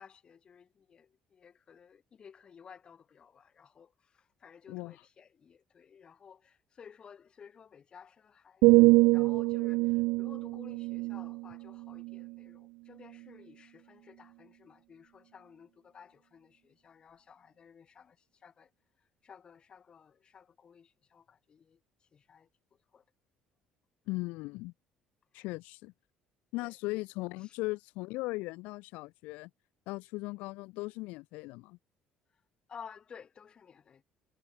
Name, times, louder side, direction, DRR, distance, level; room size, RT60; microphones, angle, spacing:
voice 1, 0.0-18.2 18.4-18.7 19.2-21.8 22.1-22.5 22.9-23.0 26.6-26.7 27.4-27.5 32.7-34.0, left 7 dB, 35° left, 3.2 m, -55 dB
voice 2, 4.7-5.1 24.1-24.7 25.3-25.9 26.5-29.5 29.9-31.8, left 23 dB, 85° left, 0.6 m, -38 dB
sound 1, 8.6-12.5 13.0-13.3, right 24 dB, 90° right, 0.5 m, -25 dB
cardioid pair, 115°, 3 cm